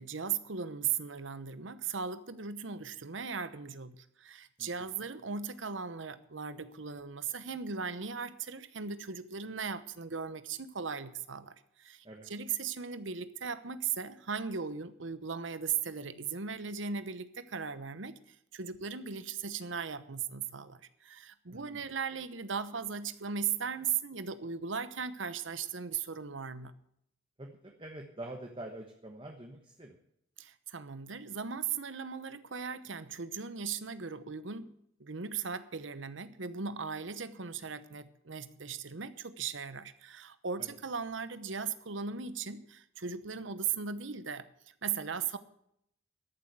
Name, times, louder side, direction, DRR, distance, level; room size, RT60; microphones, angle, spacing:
voice 1, 0.0-26.7 30.4-45.4, right 6 dB, 75° right, 13 dB, 1.0 m, -38 dB
voice 2, 21.5-21.8 27.4-30.0 40.6-40.8, right 1 dB, 25° right, 2 dB, 1.2 m, -46 dB
13.5 x 7.4 x 8.0 m, 0.74 s
head